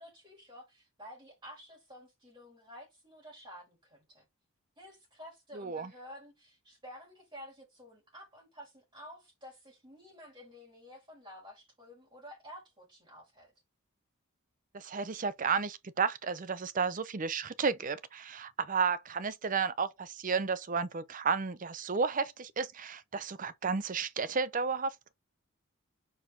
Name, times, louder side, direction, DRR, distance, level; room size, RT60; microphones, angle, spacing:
voice 1, 0.0-4.2 4.8-13.5, equal, 25° right, 4.7 m, -51 dB
voice 2, 5.5-5.9 14.7-25.1, right 5 dB, 40° right, 0.6 m, -32 dB
5.9 x 4.9 x 3.8 m
head